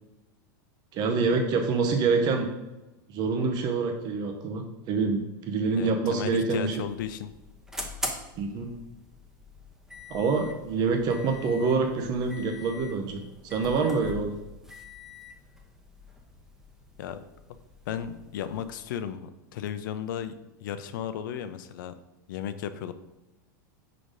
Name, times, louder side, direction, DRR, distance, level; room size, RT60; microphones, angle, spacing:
voice 1, 0.9-2.5 3.1-6.7 8.4-8.7 10.1-14.4, right 4 dB, 40° right, 3 dB, 0.8 m, -26 dB
voice 2, 5.8-7.3 17.0-17.2 17.9-20.3 20.6-21.9 22.3-22.9, left 9 dB, 75° left, 11 dB, 0.5 m, -34 dB
sound 1, 6.5-19.0, left 2 dB, 5° right, 0.9 m, -43 dB
4.8 x 4.0 x 5.1 m, 1.0 s
supercardioid pair, 130°, 11 cm